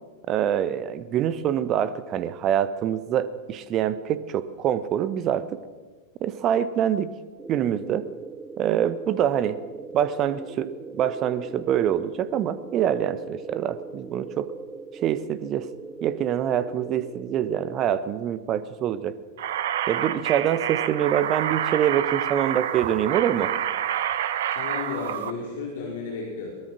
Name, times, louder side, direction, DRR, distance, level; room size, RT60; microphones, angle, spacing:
voice 1, 0.3-5.6 6.2-7.1 7.5-8.1 8.6-9.6 9.9-14.5 14.9-15.7 16.0-19.2 19.9-23.5, right 10 dB, 35° right, 15 dB, 1.2 m, -25 dB
sound 1, 7.4-17.9, right 4 dB, 15° right, 0.6 m, -41 dB
sound 2, 19.4-25.3, right 10 dB, 55° right, 1.2 m, -28 dB
voice 2, 24.5-26.5, left 4 dB, 55° left, -1 dB, 4.7 m, -33 dB
23.0 x 20.0 x 6.2 m, 1.4 s
figure-of-eight pair, 90°, 0 cm